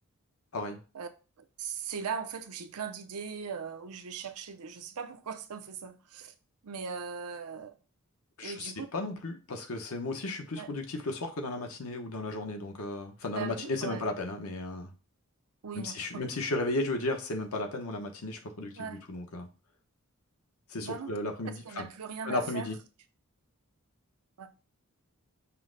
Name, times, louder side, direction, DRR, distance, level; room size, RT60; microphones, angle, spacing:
voice 1, 1.4-6.3 6.6-7.7 8.4-8.9 10.6-10.7 13.3-14.1 15.6-16.2 18.8-19.0 20.8-21.1 21.4-22.7 24.4-24.5, right 6 dB, 85° right, 0.6 m, -39 dB
voice 2, 8.4-14.9 15.7-19.5 20.7-21.8 22.2-22.8, left 2 dB, 70° left, 0.9 m, -34 dB
5.5 x 2.1 x 3.8 m
head